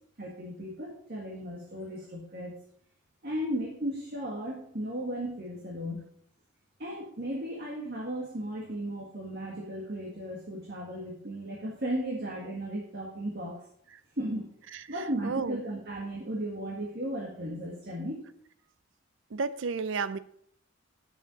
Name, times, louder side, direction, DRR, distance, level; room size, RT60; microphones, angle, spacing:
voice 1, 0.2-2.6 3.2-6.0 6.8-13.6 14.2-14.5 14.9-18.2, right 1 dB, 50° right, -1 dB, 1.7 m, -35 dB
voice 2, 15.2-15.6 19.3-20.2, right 4 dB, 70° right, 15 dB, 0.5 m, -31 dB
8.3 x 7.1 x 5.2 m, 0.65 s
head